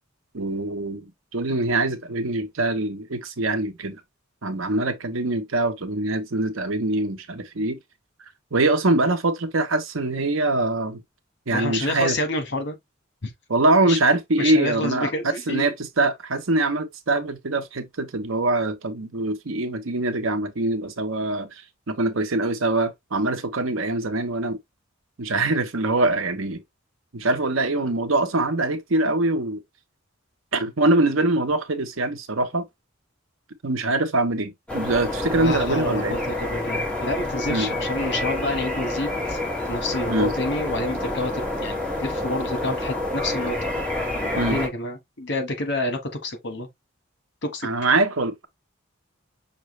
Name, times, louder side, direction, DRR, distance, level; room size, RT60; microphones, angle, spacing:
voice 1, 0.3-4.0 4.4-7.8 8.5-11.0 11.5-12.2 13.5-24.6 25.2-26.6 27.1-29.6 30.5-32.7 33.6-36.2 37.5-37.7 40.1-40.3 44.4-44.6 47.6-48.5, right 2 dB, 80° right, 0.9 m, -23 dB
voice 2, 11.5-12.8 13.2-13.3 13.9-14.0 14.4-15.7 35.3-39.4 39.7-43.7 44.1-46.7 47.4-47.7, left 2 dB, 60° left, 1.4 m, -29 dB
sound 1, 34.7-44.7, left 1 dB, 5° left, 1.8 m, -28 dB
6.0 x 2.5 x 3.2 m
head